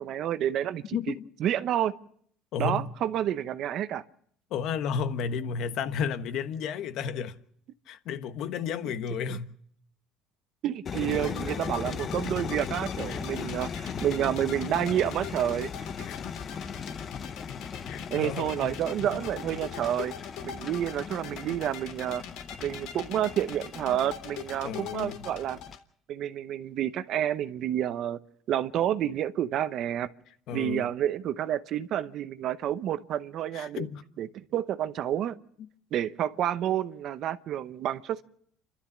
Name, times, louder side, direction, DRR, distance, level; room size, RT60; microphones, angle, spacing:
voice 1, 0.0-1.1 1.4-1.9 2.6-4.0 9.3-9.4 10.6-15.7 16.0-16.1 18.1-20.1 20.4-22.2 22.6-25.6 26.1-28.2 28.5-30.1 30.5-33.9 34.2-35.4 35.9-38.2, right 11 dB, 55° right, 0.8 m, -29 dB
voice 2, 0.9-1.3 2.5-2.9 4.5-7.4 7.9-9.5 11.2-11.3 13.1-13.6 16.1-16.5 17.9-18.5 19.7-19.8 24.6-25.3 30.5-30.9 33.5-34.0, left 7 dB, 60° left, 1.3 m, -33 dB
sound 1, 10.8-25.8, left 6 dB, 35° left, 0.8 m, -38 dB
sound 2, 11.0-25.8, left 9 dB, 80° left, 3.3 m, -41 dB
28.5 x 13.0 x 7.3 m
cardioid pair, 140°, 0 cm